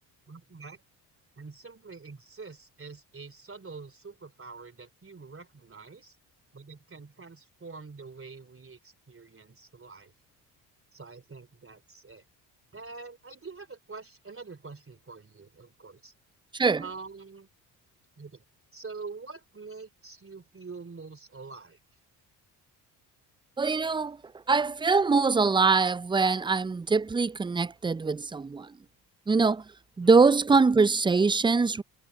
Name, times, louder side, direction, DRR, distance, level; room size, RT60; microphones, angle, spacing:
voice 1, 0.3-0.8 1.4-6.2 6.5-10.1 10.9-12.2 12.7-16.1 16.8-17.5 18.2-18.4 18.7-21.8 30.0-30.1, right 4 dB, 30° right, 3.1 m, -45 dB
voice 2, 23.6-24.2 24.5-28.7 29.3-29.6 30.0-31.8, right 4 dB, 10° right, 0.4 m, -23 dB
hypercardioid pair, 55°, 44 cm